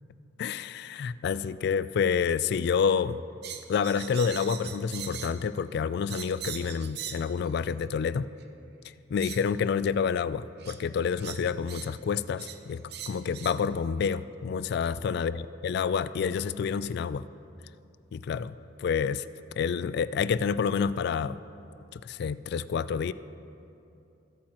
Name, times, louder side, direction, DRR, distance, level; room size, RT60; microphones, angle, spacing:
voice 1, 0.4-3.2 3.7-8.3 9.1-15.4 15.6-17.2 18.1-18.5 18.8-19.3 19.6-21.4 21.9-23.1, left 6 dB, 60° left, 16 dB, 0.3 m, -28 dB
sound 1, 3.4-5.4 6.1-7.3 8.4-8.5 9.2-9.4 10.6-10.8 11.2-11.9 12.4-12.6 12.9-13.6, right 9 dB, 60° right, 0.7 m, -40 dB
21.5 x 8.7 x 3.0 m, 2.7 s
head